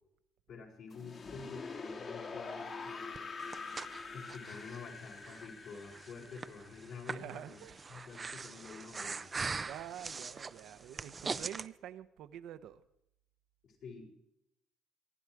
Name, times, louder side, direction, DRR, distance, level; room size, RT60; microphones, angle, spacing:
voice 1, 0.5-3.3 4.1-7.6 7.9-9.3 13.6-14.1, left 4 dB, 65° left, -1 dB, 5.8 m, -48 dB
sound 1, 0.9-7.8, left 4 dB, 45° left, 2.4 m, -45 dB
Breathing, 3.2-11.7, right 4 dB, 25° right, 0.6 m, -42 dB
voice 2, 7.1-7.8 9.7-12.8, right 11 dB, 70° right, 10 dB, 0.9 m, -47 dB
26.5 x 11.0 x 4.8 m, 0.81 s
cardioid pair, 105°, 0 cm